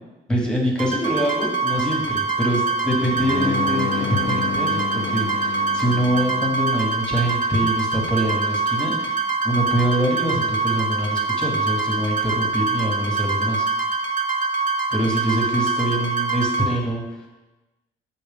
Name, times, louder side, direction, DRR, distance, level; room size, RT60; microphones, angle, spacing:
voice 1, 0.3-9.2 9.4-13.7 14.9-17.3, equal, 5° left, 0 dB, 1.4 m, -24 dB
sound 1, 0.8-16.7, right 4 dB, 40° right, 0.9 m, -24 dB
sound 2, 1.2-6.8, left 7 dB, 85° left, 0.5 m, -32 dB
6.2 x 4.3 x 3.6 m, 1.1 s
cardioid pair, 90°, 20 cm